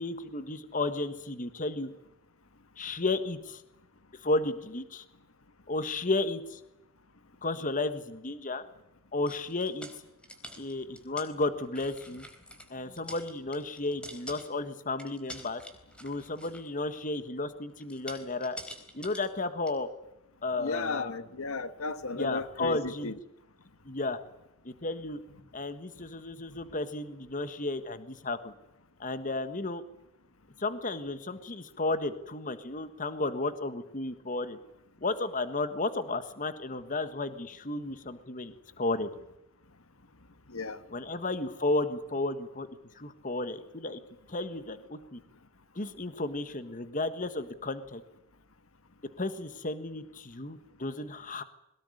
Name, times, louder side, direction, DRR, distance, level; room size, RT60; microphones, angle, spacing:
voice 1, 0.0-1.9 2.8-3.6 4.1-5.0 5.7-6.6 7.4-8.6 9.1-9.9 10.6-12.3 12.7-15.6 16.0-18.6 18.9-19.9 20.4-21.2 22.1-23.1 23.8-24.2 24.6-25.2 25.5-28.5 29.0-29.8 30.6-34.6 35.0-39.1 40.9-42.7 42.9-44.0 44.3-45.2 45.7-48.0 49.2-51.4, left 2 dB, 40° left, 12 dB, 1.5 m, -33 dB
sound 1, 9.3-11.3 11.6-12.7 13.0-14.7 15.0-16.8 17.8-19.3 19.7-19.8, left 1 dB, 5° left, 4.1 m, -46 dB
voice 2, 20.6-23.2 40.5-40.8, left 3 dB, 75° left, 12 dB, 1.6 m, -34 dB
22.5 x 20.0 x 9.9 m, 0.88 s
head